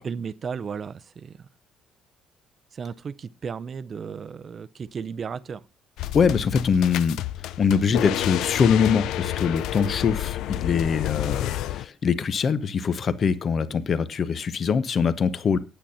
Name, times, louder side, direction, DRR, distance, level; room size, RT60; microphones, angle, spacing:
voice 1, 0.0-1.5 2.7-5.6, right 6 dB, 30° right, 0.6 m, -34 dB
sound 1, 6.0-11.9, left 13 dB, 75° left, 0.5 m, -29 dB
voice 2, 6.1-7.2 7.6-15.6, left 6 dB, 35° left, 0.8 m, -23 dB
9.1 x 8.6 x 5.6 m
cardioid pair, 150°, 0 cm